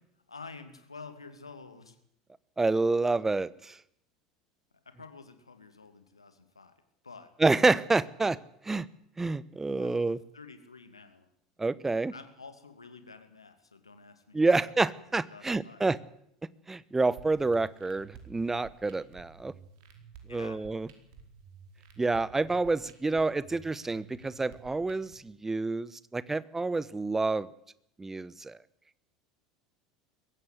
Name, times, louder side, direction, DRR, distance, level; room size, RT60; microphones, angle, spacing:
voice 1, 0.3-2.0 4.8-6.7 7.0-7.3 9.7-11.3 12.0-14.8 15.3-15.9 20.3-20.6, left 4 dB, 90° left, 9 dB, 2.4 m, -49 dB
voice 2, 2.6-3.8 7.4-8.4 8.6-8.9 9.2-10.2 11.6-12.1 14.3-16.0 16.7-19.5 20.3-20.9 22.0-27.5 28.0-28.6, right 3 dB, 15° right, 19 dB, 1.0 m, -28 dB
sound 1, 17.2-25.1, right 6 dB, 60° right, 4.7 m, -53 dB
22.0 x 16.5 x 8.1 m, 0.73 s
figure-of-eight pair, 75°, 3 cm